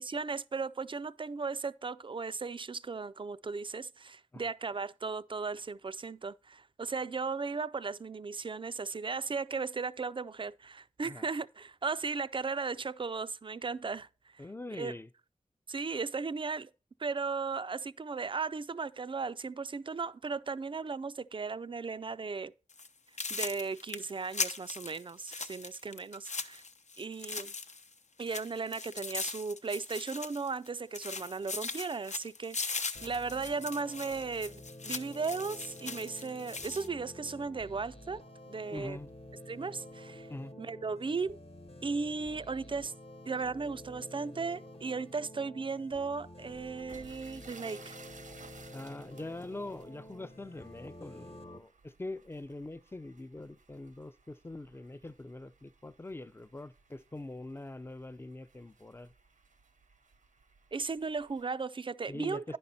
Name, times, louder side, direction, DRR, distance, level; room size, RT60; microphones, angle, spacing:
voice 1, 0.0-14.1 14.3-14.4 14.8-14.9 15.7-16.7 17.0-22.5 23.3-26.6 27.0-27.5 28.2-38.2 38.5-39.0 39.5-40.3 40.6-41.4 41.8-42.9 43.3-48.0 60.7-62.6, right 4 dB, 40° right, 0.4 m, -36 dB
voice 2, 14.4-15.1 38.7-39.1 40.3-40.5 48.7-59.1 62.1-62.6, left 2 dB, 20° left, 0.5 m, -43 dB
sound 1, 22.7-22.9 23.2-27.9 28.2-30.7 30.9-36.9, left 4 dB, 65° left, 0.7 m, -39 dB
sound 2, 32.9-51.6, left 1 dB, 50° left, 1.1 m, -50 dB
sound 3, 46.5-61.4, right 4 dB, 85° right, 0.9 m, -58 dB
10.0 x 5.4 x 4.1 m
wide cardioid pair, 50°, 13 cm